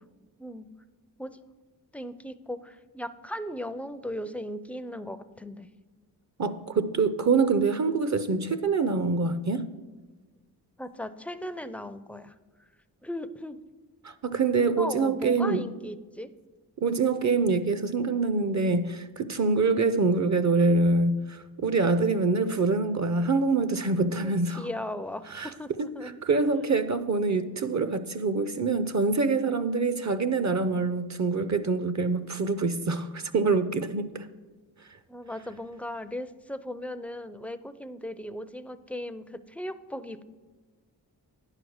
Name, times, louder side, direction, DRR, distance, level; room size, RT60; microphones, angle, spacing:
voice 1, 1.9-5.7 10.8-12.3 13.0-13.6 14.8-16.3 24.2-26.2 26.5-26.6 35.1-40.2, left 1 dB, 5° left, 0.4 m, -37 dB
voice 2, 6.4-9.7 14.0-15.6 16.8-24.7 25.3-25.5 25.8-25.9 26.2-34.3, right 3 dB, 40° right, 0.6 m, -25 dB
10.0 x 4.9 x 6.3 m
cardioid pair, 45°, 43 cm